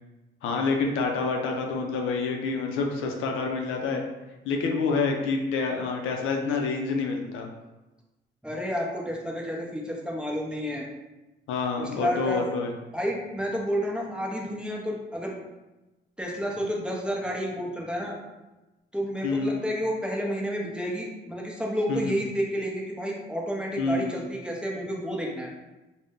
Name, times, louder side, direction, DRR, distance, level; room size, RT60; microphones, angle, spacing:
voice 1, 0.4-4.0 4.4-7.5 11.5-12.7 19.2-19.5 21.9-22.0 23.8-24.1, left 4 dB, 90° left, 2 dB, 0.5 m, -27 dB
voice 2, 8.4-10.8 11.8-12.4 12.9-15.3 16.2-18.2 18.9-25.5, equal, 5° right, -2 dB, 0.6 m, -30 dB
2.5 x 2.1 x 3.5 m, 1.1 s
cardioid pair, 90°, 20 cm